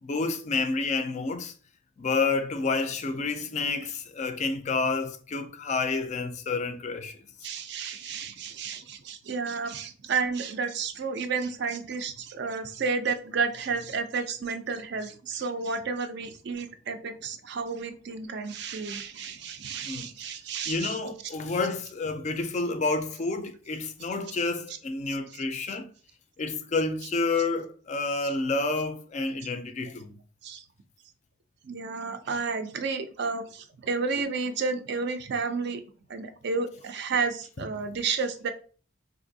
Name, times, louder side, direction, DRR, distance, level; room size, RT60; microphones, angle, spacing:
voice 1, 0.0-1.5 2.0-7.3 19.8-20.1 20.7-25.9 26.4-30.2, left 3 dB, 35° left, 0.3 m, -29 dB
voice 2, 7.4-21.0 30.4-30.6 31.6-35.8 36.1-38.5, right 4 dB, 55° right, 0.4 m, -31 dB
3.9 x 2.5 x 2.6 m
head